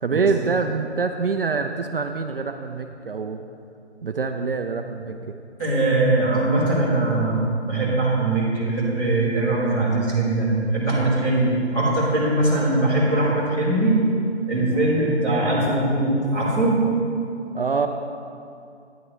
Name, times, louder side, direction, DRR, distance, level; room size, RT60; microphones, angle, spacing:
voice 1, 0.0-3.4 4.0-5.3 15.6-15.8 17.5-17.9, right 4 dB, 55° right, 5 dB, 0.5 m, -25 dB
voice 2, 5.6-14.0 14.5-16.8, right 2 dB, 10° left, -12 dB, 2.3 m, -21 dB
12.0 x 9.9 x 3.1 m, 2.5 s
hypercardioid pair, 170°, 34 cm